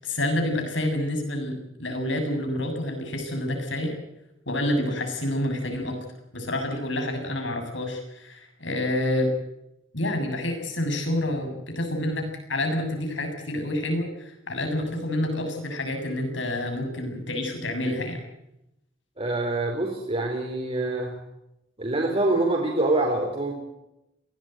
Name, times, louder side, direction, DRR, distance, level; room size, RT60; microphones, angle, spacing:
voice 1, 0.0-4.0 4.5-6.0 6.3-9.3 9.9-18.2, left 1 dB, 70° left, 5 dB, 7.5 m, -28 dB
voice 2, 19.2-21.1 21.8-23.5, right 2 dB, 30° right, 0 dB, 4.3 m, -25 dB
22.5 x 18.0 x 9.3 m, 0.86 s
head